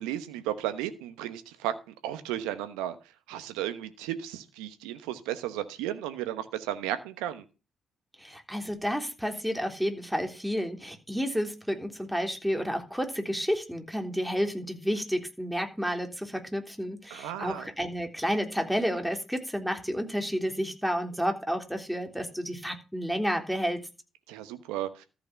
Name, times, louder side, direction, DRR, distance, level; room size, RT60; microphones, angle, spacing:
voice 1, 0.0-1.7 2.0-3.0 3.3-7.4 17.1-17.7 24.3-25.0, right 12 dB, 80° right, 11 dB, 1.0 m, -34 dB
voice 2, 8.2-23.8, equal, ahead, 4 dB, 3.4 m, -31 dB
14.0 x 6.3 x 5.8 m, 0.30 s
hypercardioid pair, 50°, 0 cm